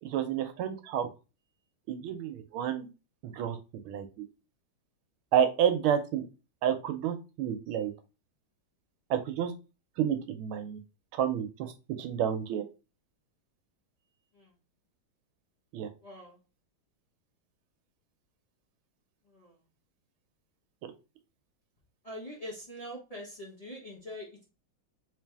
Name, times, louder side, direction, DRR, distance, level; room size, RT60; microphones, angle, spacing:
voice 1, 0.0-1.1 1.9-2.9 3.2-3.6 3.8-4.1 5.3-6.3 6.6-7.9 9.1-9.5 10.0-10.8 11.1-11.7 12.0-12.6 15.7-15.9, right 9 dB, 85° right, 8 dB, 1.5 m, -29 dB
voice 2, 16.0-16.4 19.3-19.5 22.0-24.4, equal, 25° left, -5 dB, 0.9 m, -43 dB
3.4 x 3.3 x 3.4 m, 0.30 s
omnidirectional pair, 2.3 m